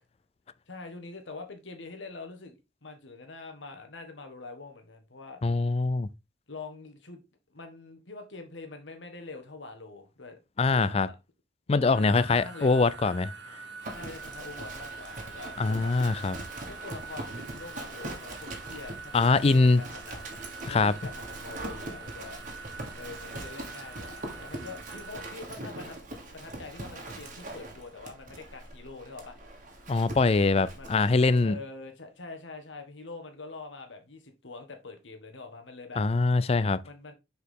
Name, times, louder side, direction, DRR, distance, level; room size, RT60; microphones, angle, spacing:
voice 1, 0.7-5.4 6.5-7.2 7.5-10.4 10.7-11.2 11.8-12.9 13.9-15.9 16.7-20.3 20.6-22.4 22.9-26.0 26.3-29.4 30.6-30.9 31.4-36.0 36.8-37.1, left 3 dB, 85° left, 1.6 m, -44 dB
voice 2, 5.4-6.1 10.6-11.1 11.7-13.3 15.6-16.4 19.1-19.8 20.7-20.9 29.9-31.6 36.0-36.8, left 3 dB, 35° left, 0.4 m, -23 dB
sound 1, 11.9-25.3, right 4 dB, 70° right, 1.1 m, -45 dB
Livestock farm animals working animals, 13.8-31.4, right 2 dB, 45° right, 1.6 m, -42 dB
6.6 x 4.8 x 3.7 m
head